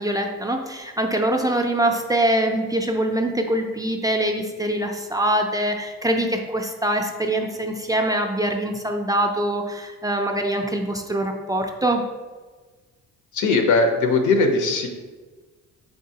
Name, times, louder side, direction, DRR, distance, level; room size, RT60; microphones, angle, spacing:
voice 1, 0.0-12.0, right 1 dB, 15° right, 2 dB, 0.3 m, -23 dB
voice 2, 13.3-14.9, left 3 dB, 75° left, 5 dB, 0.6 m, -19 dB
3.9 x 3.6 x 2.7 m, 1.3 s
cardioid pair, 90°, 30 cm